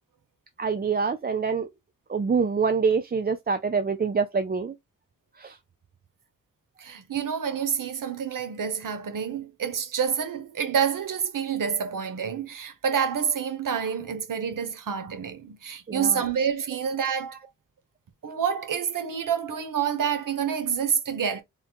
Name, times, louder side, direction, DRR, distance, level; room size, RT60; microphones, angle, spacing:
voice 1, 0.6-1.7 2.1-4.7 5.4-5.6 15.9-16.3, right 5 dB, 30° right, 0.4 m, -25 dB
voice 2, 6.8-17.4 18.2-21.4, right 7 dB, 85° right, 0.8 m, -28 dB
3.7 x 2.2 x 4.3 m
wide cardioid pair, 70°, 32 cm